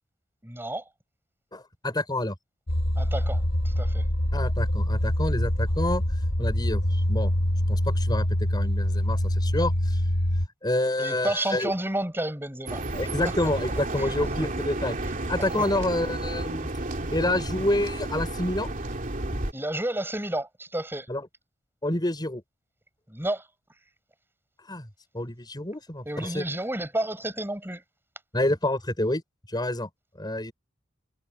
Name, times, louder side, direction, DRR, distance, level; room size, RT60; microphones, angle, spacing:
voice 1, 0.4-0.8 3.0-4.0 11.0-12.8 13.2-13.3 14.0-14.1 15.6-15.7 19.5-21.1 23.1-23.5 26.0-27.8, right 1 dB, 10° right, 8.0 m, -31 dB
voice 2, 1.5-2.3 4.3-6.0 6.4-7.3 7.7-10.0 10.6-11.7 12.9-15.0 15.3-16.7 17.1-18.7 21.1-21.3 21.8-22.4 24.7-24.9 25.1-26.4 28.3-29.2 29.5-29.9 30.2-30.5, left 1 dB, 20° left, 5.7 m, -28 dB
sound 1, 2.7-10.5, equal, 80° left, 3.3 m, -25 dB
sound 2, 12.7-19.5, right 2 dB, 40° right, 2.8 m, -31 dB
head